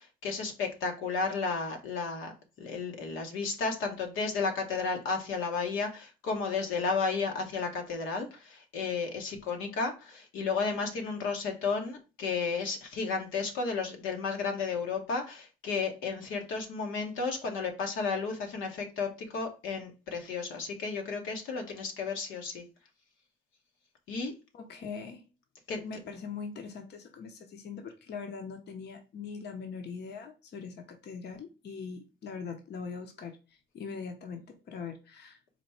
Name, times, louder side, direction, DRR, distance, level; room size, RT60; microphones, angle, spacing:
voice 1, 0.0-2.3 2.6-22.6 24.1-24.3 25.7-25.8, left 4 dB, 90° left, 1.0 m, -33 dB
voice 2, 24.5-25.2 25.8-35.4, left 5 dB, 55° left, 0.7 m, -41 dB
4.2 x 2.2 x 4.3 m
cardioid pair, 90°, 20 cm